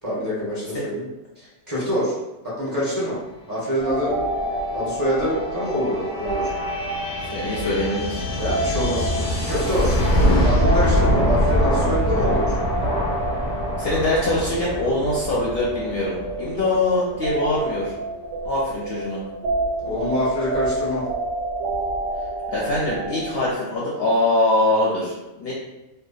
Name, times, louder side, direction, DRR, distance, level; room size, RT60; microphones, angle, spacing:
voice 1, 0.0-1.0 1.4-2.1 2.6-3.2 3.5-4.2 4.7-6.5 8.4-10.0 10.4-12.5 19.8-21.0, equal, 20° right, -9 dB, 0.7 m, -25 dB
sound 1, 3.7-17.2, equal, 85° left, 1.0 m, -24 dB
sound 2, 3.8-23.5, right 1 dB, 70° right, 0.8 m, -29 dB
voice 2, 7.3-8.2 13.8-17.9 18.4-19.2 22.5-25.5, left 2 dB, 60° left, -5 dB, 0.6 m, -23 dB
2.7 x 2.2 x 2.3 m, 0.98 s
omnidirectional pair, 1.4 m